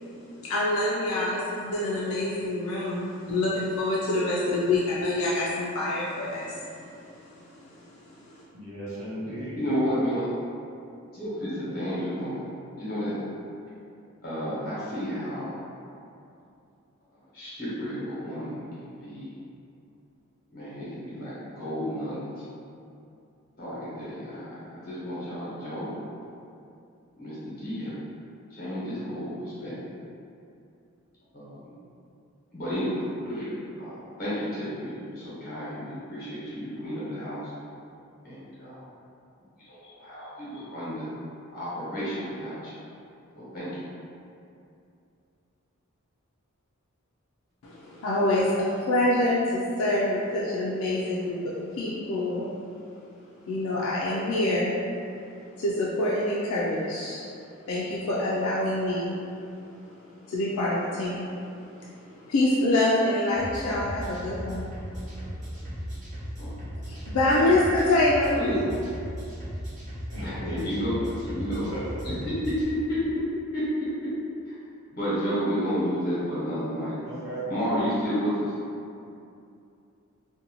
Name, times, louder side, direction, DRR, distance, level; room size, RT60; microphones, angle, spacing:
voice 1, 0.4-6.8 7.1-7.4 8.2-8.3 47.6-51.4 51.7-52.5 53.5-54.8 55.6-57.2 57.7-59.2 60.3-61.4 61.7-64.7 66.8-68.4, left 1 dB, 80° left, -6 dB, 0.4 m, -26 dB
voice 2, 8.5-9.6 70.1-70.4 71.5-71.9 77.1-77.5, right 1 dB, 70° right, -9 dB, 0.8 m, -36 dB
voice 3, 9.2-10.3 11.1-13.2 14.2-15.6 17.3-19.3 20.5-22.4 23.6-25.9 27.2-28.0 28.5-29.7 31.3-31.8 32.5-37.4 38.2-38.9 39.6-41.1 41.5-42.7 43.3-43.7 66.4-66.5 67.3-67.6 68.3-68.8 70.2-73.3 73.5-73.9 74.5-74.6 74.9-76.9 77.5-78.5, equal, 50° left, -9 dB, 1.0 m, -31 dB
sound 1, 63.3-72.6, equal, 35° right, 0.9 m, -37 dB
2.6 x 2.2 x 2.8 m, 2.6 s
head